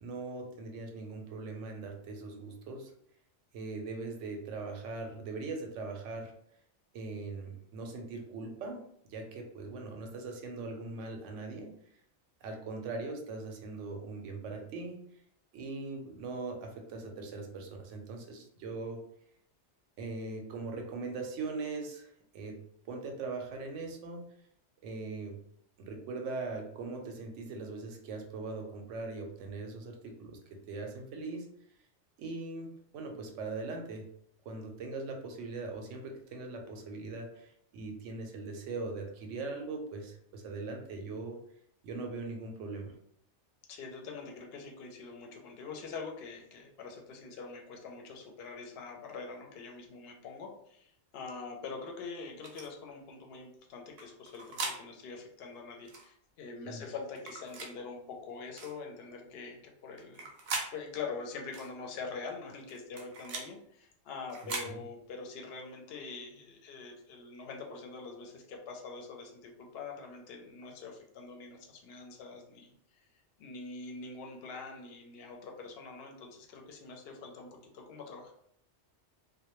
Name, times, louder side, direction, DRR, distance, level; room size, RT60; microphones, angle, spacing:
voice 1, 0.0-2.9 3.5-6.3 6.9-11.7 12.4-15.0 15.5-19.0 20.0-22.6 22.9-24.2 24.8-25.4 25.8-31.5 32.2-34.1 34.5-41.4 41.8-42.9 56.6-56.8 64.7-64.8, right 3 dB, 90° right, 3 dB, 0.9 m, -40 dB
voice 2, 43.7-60.3 60.7-73.1 73.4-78.3, left 4 dB, 65° left, 1 dB, 0.7 m, -44 dB
sound 1, 52.4-52.7 54.0-54.8 55.9-56.1 57.2-57.7 58.6-58.8 60.0-60.7 61.5-61.7 62.7-63.5 64.3-64.7, right 3 dB, 60° right, 0.7 m, -39 dB
2.2 x 2.1 x 2.9 m, 0.67 s
omnidirectional pair, 1.2 m